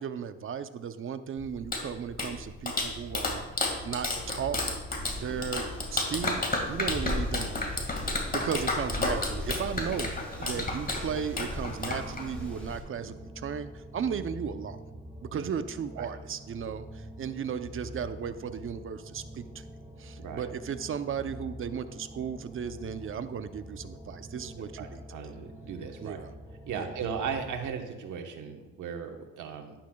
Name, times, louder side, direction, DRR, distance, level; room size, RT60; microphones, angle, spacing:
voice 1, 0.0-3.4 3.8-4.6 5.1-5.6 5.9-6.4 6.7-7.8 8.3-14.8 15.2-19.6 20.0-25.4 26.0-26.3 26.8-26.9, right 7 dB, 45° right, 10 dB, 0.7 m, -35 dB
Clapping, 1.4-12.5, left 2 dB, 30° left, 2.0 m, -32 dB
Wind, 4.9-12.8, left 1 dB, 5° left, 3.1 m, -39 dB
sound 1, 10.9-27.7, equal, 10° right, 2.0 m, -46 dB
voice 2, 24.6-26.2 26.7-29.7, right 6 dB, 80° right, 4 dB, 1.3 m, -37 dB
11.5 x 10.5 x 2.3 m, 1.1 s
cardioid pair, 90°, 30 cm